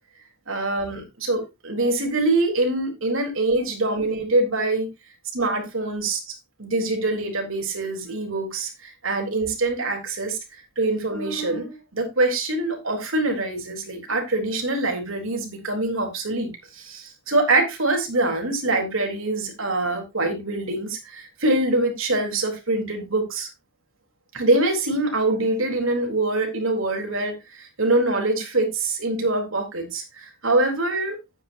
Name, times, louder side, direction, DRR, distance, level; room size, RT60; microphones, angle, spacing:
voice 1, 0.5-4.9 5.3-6.2 6.6-10.4 10.8-23.5 24.3-31.2, right 2 dB, 70° right, 3.8 m, -24 dB
12.0 x 9.4 x 2.7 m
head